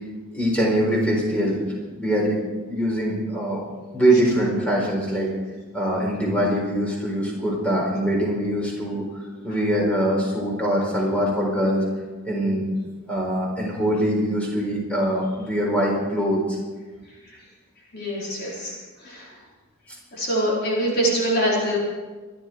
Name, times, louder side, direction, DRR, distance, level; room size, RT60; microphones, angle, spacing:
voice 1, 0.3-1.6 2.0-2.4 2.7-3.6 3.9-5.3 5.7-9.0 9.4-11.9 12.2-12.6 13.1-16.6, right 1 dB, 5° left, -2 dB, 4.3 m, -23 dB
voice 2, 17.9-19.4 20.1-21.8, right 1 dB, 45° left, -5 dB, 4.6 m, -24 dB
26.5 x 11.5 x 4.7 m, 1.3 s
head